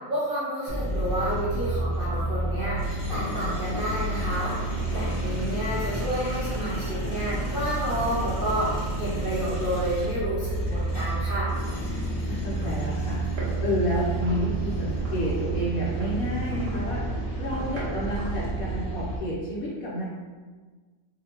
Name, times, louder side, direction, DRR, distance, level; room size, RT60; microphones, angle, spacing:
voice 1, 0.1-11.5, equal, 75° right, -9 dB, 0.5 m, -30 dB
sound 1, 0.7-19.2, right 2 dB, 40° left, 0.5 m, -30 dB
sound 2, 11.4-18.4, right 1 dB, 60° right, 1.2 m, -43 dB
voice 2, 11.9-13.2 13.6-20.1, equal, 65° left, -6 dB, 0.9 m, -30 dB
3.9 x 2.5 x 2.8 m, 1.4 s
omnidirectional pair, 2.1 m